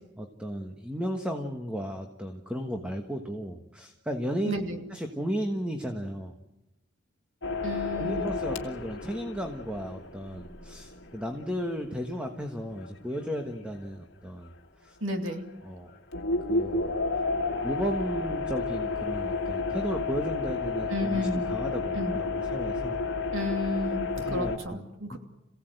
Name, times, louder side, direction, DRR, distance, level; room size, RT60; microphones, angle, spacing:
voice 1, 0.2-4.5 4.9-6.3 8.0-14.5 14.8-15.0 15.6-15.9 16.5-16.9 17.6-23.0 24.2-24.8 25.1-25.2, equal, 5° right, 3 dB, 1.3 m, -34 dB
voice 2, 4.4-4.8 7.6-8.4 15.0-15.5 20.9-21.5 21.9-22.2 23.3-25.2, left 1 dB, 80° right, 4 dB, 2.8 m, -32 dB
sound 1, 7.4-13.4 13.7-13.8 15.3-15.6 16.1-24.6, left 3 dB, 60° left, 2.0 m, -31 dB
27.5 x 16.5 x 7.9 m, 0.97 s
head